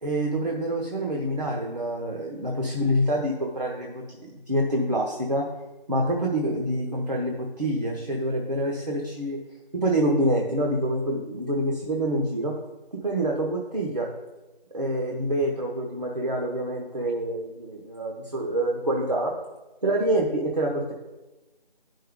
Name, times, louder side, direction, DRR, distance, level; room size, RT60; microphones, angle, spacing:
voice 1, 0.0-5.5 5.9-9.4 9.7-12.5 12.9-14.1 14.7-19.4 19.8-20.9, right 1 dB, 45° right, -1 dB, 1.0 m, -26 dB
11.5 x 5.5 x 3.7 m, 1.1 s
figure-of-eight pair, 165°, 29 cm